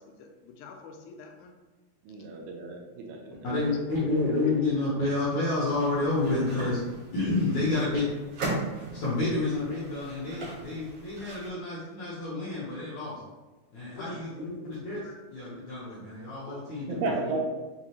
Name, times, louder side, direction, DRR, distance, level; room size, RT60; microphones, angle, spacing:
voice 1, 0.0-1.6 4.4-4.5 7.8-7.9 13.9-14.5 15.0-15.1 16.5-16.6, left 6 dB, 85° left, 3 dB, 2.5 m, -44 dB
voice 2, 2.0-3.5 14.1-14.2 16.9-17.4, right 3 dB, 80° right, 0 dB, 2.3 m, -33 dB
voice 3, 3.4-6.8 7.1-8.0 8.9-13.2 13.7-17.4, left 2 dB, 70° left, -8 dB, 1.8 m, -29 dB
sound 1, 5.7-11.5, right 2 dB, 65° right, 1.4 m, -38 dB
6.5 x 2.4 x 2.9 m, 1.2 s
omnidirectional pair, 4.5 m